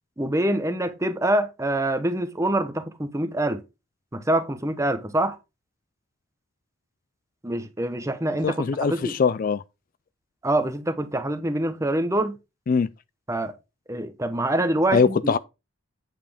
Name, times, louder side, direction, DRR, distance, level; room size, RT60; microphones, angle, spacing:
voice 1, 0.2-3.6 4.1-5.4 7.4-8.6 8.9-9.1 10.4-12.4 13.3-13.5 13.9-15.3, right 1 dB, 15° right, 0.9 m, -25 dB
voice 2, 8.4-9.6 12.7-12.9 14.9-15.4, left 5 dB, 45° left, 0.4 m, -22 dB
9.0 x 7.5 x 3.5 m
head